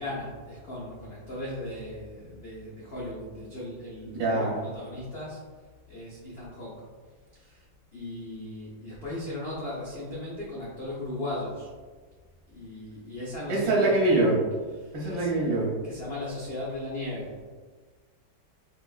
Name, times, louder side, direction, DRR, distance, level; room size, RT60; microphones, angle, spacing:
voice 1, 0.0-5.4 5.9-6.8 7.3-7.6 7.9-11.7 12.5-14.2 14.8-15.3 15.8-17.4, left 1 dB, 80° left, -6 dB, 0.5 m, -37 dB
voice 2, 4.2-4.6 13.5-14.4 14.9-15.7, right 2 dB, 65° right, -5 dB, 1.1 m, -24 dB
3.4 x 2.8 x 2.4 m, 1.4 s
omnidirectional pair, 1.9 m